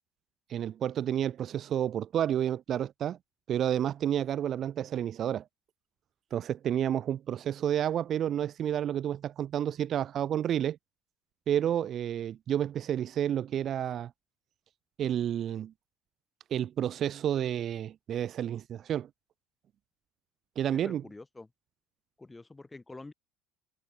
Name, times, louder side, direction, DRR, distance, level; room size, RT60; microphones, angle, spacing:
voice 1, 0.5-3.2 3.5-5.4 6.3-10.8 11.5-14.1 15.0-15.7 16.5-19.1 20.6-21.0, right 10 dB, 50° right, 0.6 m, -30 dB
voice 2, 20.6-21.5 22.2-23.1, left 2 dB, 15° left, 2.1 m, -47 dB
hypercardioid pair, 80°, 0 cm